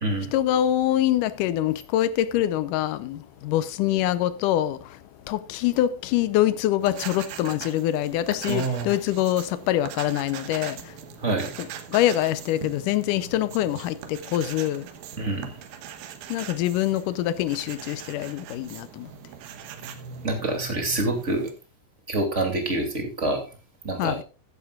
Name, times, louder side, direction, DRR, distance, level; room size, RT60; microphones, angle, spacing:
voice 1, 0.3-11.0 11.6-14.9 16.3-19.1 24.0-24.2, left 13 dB, 75° left, 2.1 m, -25 dB
sound 1, 6.8-21.5, right 8 dB, 85° right, 2.9 m, -41 dB
voice 2, 8.5-8.9 11.2-11.5 15.2-15.6 20.2-21.5 22.1-23.4 23.8-24.2, right 2 dB, 25° right, 2.4 m, -26 dB
15.0 x 11.0 x 2.4 m
omnidirectional pair, 4.0 m